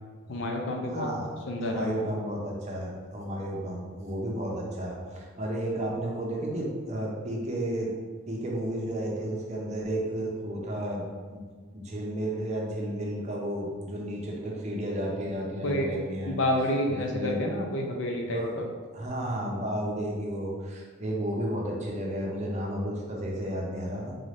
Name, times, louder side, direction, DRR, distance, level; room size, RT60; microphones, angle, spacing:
voice 1, 0.3-1.1 1.5-2.0 15.6-15.9 16.3-18.6, left 1 dB, 65° left, 2 dB, 0.5 m, -29 dB
voice 2, 0.9-1.3 1.6-7.9 8.3-11.4 11.7-16.4 16.9-17.4 18.3-24.2, right 1 dB, 35° right, -2 dB, 0.7 m, -32 dB
3.9 x 2.6 x 3.2 m, 1.5 s
head